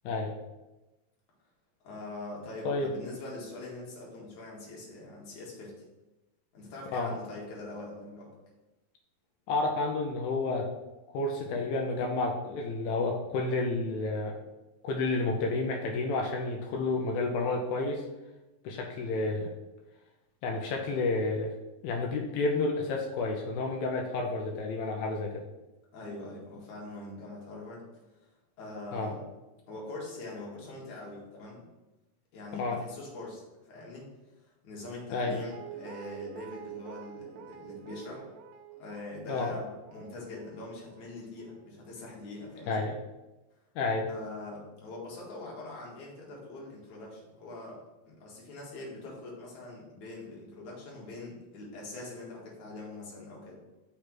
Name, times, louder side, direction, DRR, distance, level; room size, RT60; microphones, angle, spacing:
voice 1, 1.8-5.8 6.5-8.3 25.9-27.8 28.6-29.2 29.7-31.6 32.3-33.4 33.7-34.1 34.6-38.3 38.8-42.8 44.0-47.8 48.1-53.6, left 2 dB, 60° left, -4 dB, 2.7 m, -43 dB
voice 2, 9.5-10.7 11.1-14.3 14.8-18.0 18.6-19.5 20.4-21.5 21.8-25.4 28.9-29.1 32.5-32.8 35.1-35.4 39.3-39.5 42.7-43.0 43.8-44.1, left 3 dB, 85° left, 1 dB, 2.5 m, -30 dB
Guitar, 34.9-41.9 42.2-42.3, right 8 dB, 85° right, 1.8 m, -48 dB
5.8 x 3.3 x 5.8 m, 1.0 s
omnidirectional pair, 4.1 m